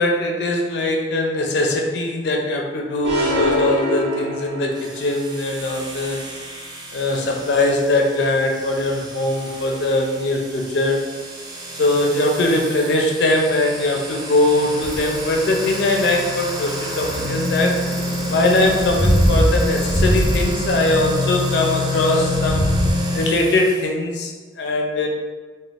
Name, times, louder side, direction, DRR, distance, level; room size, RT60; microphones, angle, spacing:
voice 1, 0.0-6.2 6.9-11.0 11.8-17.8 18.3-22.7 23.1-24.3 24.6-25.1, left 2 dB, 65° left, 1 dB, 0.4 m, -21 dB
sound 1, 3.0-5.0, left 1 dB, 70° right, 0.6 m, -23 dB
sound 2, 4.7-23.8, left 1 dB, 20° right, 0.3 m, -28 dB
Bicycle, 14.8-22.9, equal, 5° left, 0.8 m, -22 dB
3.8 x 2.1 x 2.4 m, 1.4 s
head